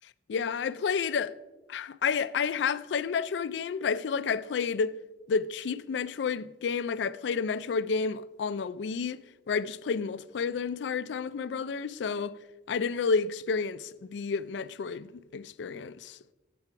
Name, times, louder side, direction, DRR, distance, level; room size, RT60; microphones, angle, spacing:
voice 1, 0.3-1.4 1.7-5.0 5.3-9.2 9.5-12.4 12.7-16.2, left 5 dB, 75° left, 0.4 m, -30 dB
7.7 x 6.0 x 5.7 m
head